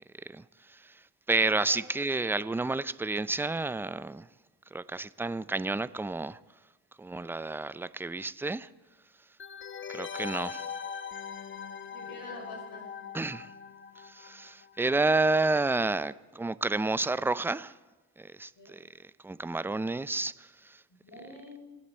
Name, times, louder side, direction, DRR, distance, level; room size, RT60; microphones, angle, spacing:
voice 1, 0.3-1.0 1.3-4.3 4.7-6.4 7.0-8.7 9.9-10.7 13.1-13.5 14.0-17.8 18.2-20.8, right 3 dB, 5° right, 0.4 m, -30 dB
Mission Successful, 9.4-14.9 15.1-15.2, left 7 dB, 30° left, 0.8 m, -41 dB
voice 2, 11.9-12.9 18.5-18.7 20.9-21.8, left 1 dB, 60° left, 6.1 m, -46 dB
24.5 x 8.6 x 4.4 m
hypercardioid pair, 50°, 39 cm